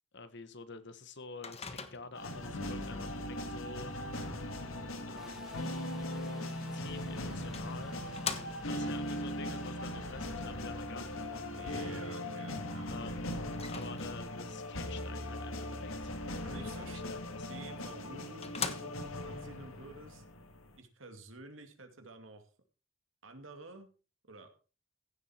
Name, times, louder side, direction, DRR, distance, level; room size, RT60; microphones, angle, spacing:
voice 1, 0.1-3.9 5.0-5.7 6.7-8.0 8.4-11.8 12.9-13.4 13.7-16.2 16.6-17.5, left 4 dB, 60° left, 11 dB, 1.3 m, -48 dB
Microwave oven, 1.4-2.3 6.7-6.8 7.5-8.9 13.5-14.4 17.5-17.6 18.1-18.2 18.4-19.3, left 6 dB, 30° left, 1.3 m, -41 dB
sound 1, 2.1-20.8, left 1 dB, 85° left, 1.9 m, -39 dB
sound 2, 5.2-19.5, equal, ahead, 0.7 m, -54 dB
voice 2, 11.5-12.9 16.4-17.0 17.5-20.2 20.8-22.5 23.2-23.9 24.2-24.5, right 2 dB, 70° right, 6 dB, 2.5 m, -50 dB
16.0 x 7.6 x 4.5 m, 0.35 s
head